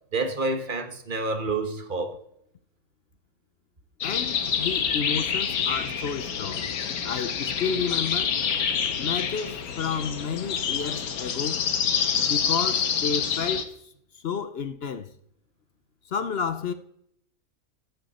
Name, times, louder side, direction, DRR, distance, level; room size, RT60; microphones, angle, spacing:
voice 1, 0.1-2.2, right 3 dB, 35° right, 1.4 m, -28 dB
sound 1, 4.0-13.6, left 7 dB, 80° left, 1.5 m, -27 dB
voice 2, 4.0-6.7 7.0-8.4 9.0-11.7 12.2-13.7 14.1-15.1 16.1-16.7, left 6 dB, 55° left, 0.8 m, -31 dB
14.5 x 9.2 x 4.2 m
omnidirectional pair, 1.5 m